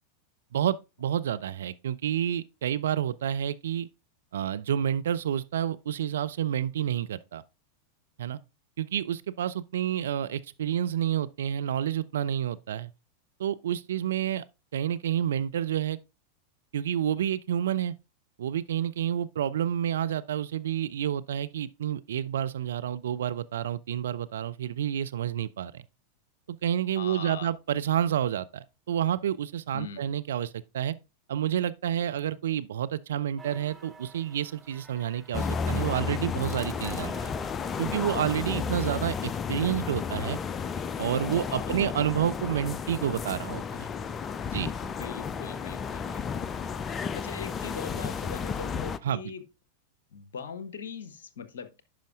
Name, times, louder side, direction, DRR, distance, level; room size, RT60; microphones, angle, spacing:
voice 1, 0.5-3.9 4.3-7.4 8.2-8.4 8.8-12.9 13.4-14.4 14.7-16.0 16.7-17.9 18.4-25.8 26.5-30.9 31.3-37.3 37.8-40.4 41.0-43.9 44.5-44.7 49.0-49.2, right 10 dB, 60° right, 0.3 m, -29 dB
voice 2, 27.0-27.5 29.7-30.2 41.5-41.8 44.8-49.5 50.1-51.8, left 6 dB, 60° left, 0.7 m, -41 dB
sound 1, 33.4-39.2, right 3 dB, 5° right, 0.8 m, -51 dB
sound 2, 35.3-49.0, left 6 dB, 25° left, 0.3 m, -33 dB
10.5 x 5.1 x 2.4 m
figure-of-eight pair, 90°, 0 cm